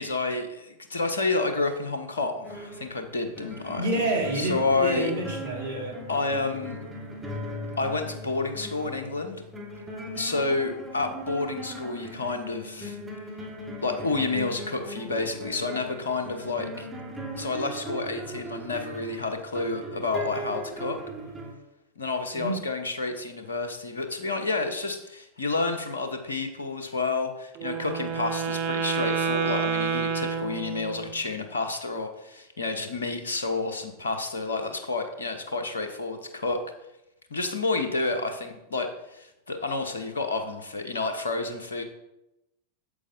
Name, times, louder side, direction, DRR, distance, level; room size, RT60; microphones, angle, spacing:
voice 1, 0.0-3.8 4.3-5.1 6.1-6.8 7.8-9.4 10.1-13.0 13.8-16.9 17.4-21.0 22.0-36.6 37.3-41.8, left 3 dB, 70° left, 7 dB, 1.0 m, -30 dB
sound 1, 2.4-21.5, right 1 dB, 10° right, 1.7 m, -38 dB
voice 2, 3.8-6.0 22.3-22.6, right 1 dB, 70° right, -1 dB, 2.1 m, -28 dB
Wind instrument woodwind instrument, 27.5-31.2, right 6 dB, 40° right, 0.7 m, -29 dB
8.3 x 7.5 x 2.7 m, 0.89 s
figure-of-eight pair, 90°, 0 cm